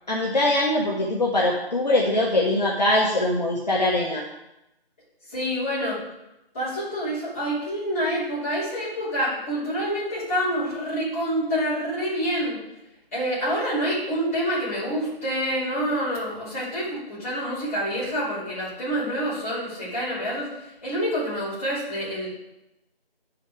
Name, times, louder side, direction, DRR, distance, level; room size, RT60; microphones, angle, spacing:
voice 1, 0.1-4.2, left 1 dB, 45° left, -3 dB, 1.3 m, -22 dB
voice 2, 5.3-6.0 6.5-12.6 13.1-22.3, equal, 15° left, -13 dB, 3.2 m, -27 dB
10.5 x 6.4 x 4.8 m, 0.91 s
figure-of-eight pair, 175°, 31 cm